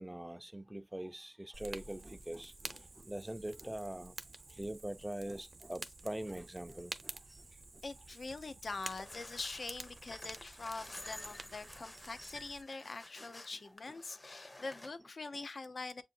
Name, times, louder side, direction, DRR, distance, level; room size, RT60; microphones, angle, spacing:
voice 1, 0.0-4.1 4.5-7.4 10.1-10.2 12.2-12.3, right 1 dB, 10° right, 0.4 m, -43 dB
Fire, 1.5-12.6, right 3 dB, 65° right, 0.7 m, -50 dB
voice 2, 7.8-16.0, left 3 dB, 80° left, 0.6 m, -44 dB
sound 1, 8.9-14.9, left 2 dB, 35° left, 0.7 m, -52 dB
7.4 x 2.5 x 2.6 m
wide cardioid pair, 70°, 0 cm